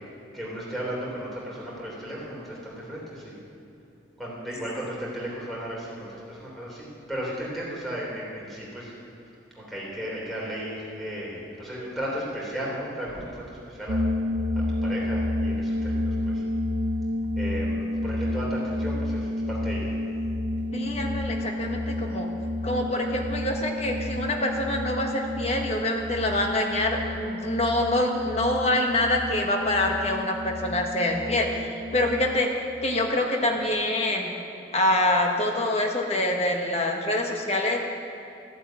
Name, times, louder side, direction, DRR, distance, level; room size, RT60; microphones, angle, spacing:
voice 1, 0.3-3.4 4.2-8.9 9.5-14.0 14.5-16.4 17.4-19.9, equal, ahead, -6 dB, 3.3 m, -35 dB
sound 1, 13.9-32.6, left 1 dB, 75° right, 1.2 m, -30 dB
voice 2, 20.7-22.3 22.6-32.5 32.8-34.3 34.7-37.8, left 1 dB, 35° left, 2 dB, 1.4 m, -25 dB
14.0 x 7.8 x 8.8 m, 2.7 s
head